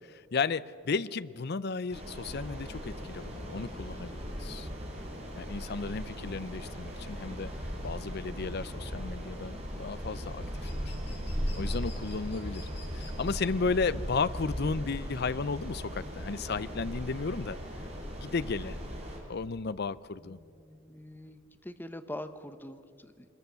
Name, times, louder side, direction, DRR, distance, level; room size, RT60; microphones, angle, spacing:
voice 1, 0.1-4.7 5.4-7.5 7.8-10.9 11.5-12.7 12.9-17.6 18.2-18.8 19.3-20.4, left 4 dB, 50° left, 16 dB, 0.6 m, -34 dB
sound 1, 1.9-19.2, equal, 30° right, 4.8 m, -38 dB
sound 2, 7.4-21.6, left 4 dB, 30° left, 4.7 m, -56 dB
voice 2, 20.2-23.3, left 1 dB, 10° left, 8 dB, 1.0 m, -44 dB
23.5 x 21.5 x 6.9 m, 2.4 s
head